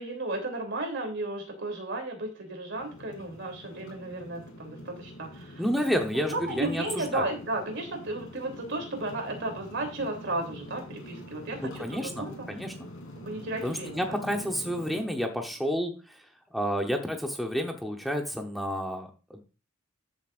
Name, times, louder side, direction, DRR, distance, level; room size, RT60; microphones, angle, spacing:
voice 1, 0.0-5.6 6.1-12.5 13.2-14.2, right 2 dB, 55° right, 4 dB, 3.2 m, -34 dB
sound 1, 2.7-15.1, left 1 dB, 70° left, 2.9 m, -45 dB
voice 2, 5.6-7.3 11.6-12.7 13.6-16.2 16.5-19.4, equal, ahead, 2 dB, 1.0 m, -30 dB
13.5 x 7.3 x 2.5 m, 0.34 s
head